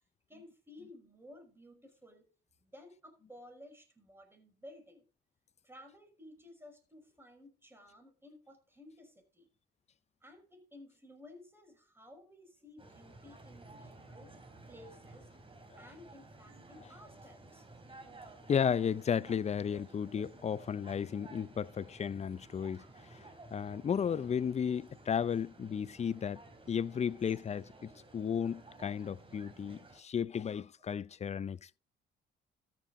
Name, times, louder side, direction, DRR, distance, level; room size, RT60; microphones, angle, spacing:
voice 1, 0.3-2.3 2.6-5.1 5.6-9.5 10.2-14.3 14.7-15.3 15.7-17.7 18.2-18.3, left 1 dB, 10° right, 5.5 m, -55 dB
sound 1, 12.8-30.0, right 2 dB, 25° right, 3.3 m, -54 dB
voice 2, 18.5-22.8 23.1-23.2 23.5-26.4 26.7-31.8, left 7 dB, 35° left, 0.5 m, -34 dB
13.5 x 7.6 x 3.7 m
cardioid pair, 90°, 20 cm